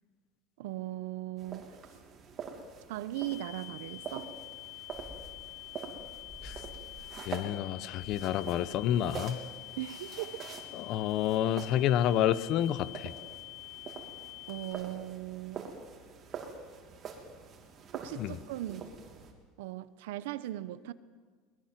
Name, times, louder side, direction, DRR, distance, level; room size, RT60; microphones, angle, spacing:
voice 1, 0.6-1.7 2.9-4.3 9.8-10.4 14.5-15.7 17.9-18.9 19.6-20.9, right 15 dB, 85° right, 14 dB, 1.0 m, -38 dB
sound 1, 1.4-19.3, right 6 dB, 30° right, 3.2 m, -46 dB
sound 2, 3.1-14.7, left 31 dB, 80° left, 7.9 m, -47 dB
sound 3, 4.9-9.9, left 1 dB, 10° left, 1.9 m, -52 dB
voice 2, 7.3-9.4 10.7-13.1 18.2-18.4, left 11 dB, 45° left, 16 dB, 0.9 m, -29 dB
22.5 x 20.0 x 7.6 m, 1.5 s
cardioid pair, 150°, 0 cm